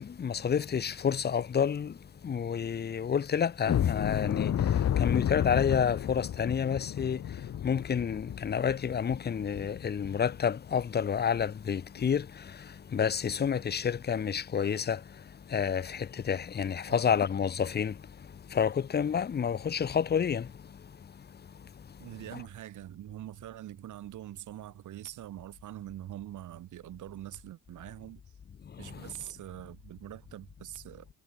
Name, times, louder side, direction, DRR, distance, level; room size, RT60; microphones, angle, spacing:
voice 1, 0.0-1.9 2.2-4.5 5.0-7.2 7.6-12.3 12.9-15.0 15.5-17.9 18.5-20.5 22.3-22.4, left 7 dB, 35° left, 0.8 m, -29 dB
sound 1, 3.6-10.4 10.8-10.9 11.3-11.5 12.0-12.1, left 10 dB, 55° left, 1.6 m, -31 dB
voice 2, 22.0-28.2 28.8-31.1, right 13 dB, 80° right, 4.3 m, -44 dB
cardioid pair, 90°, 30 cm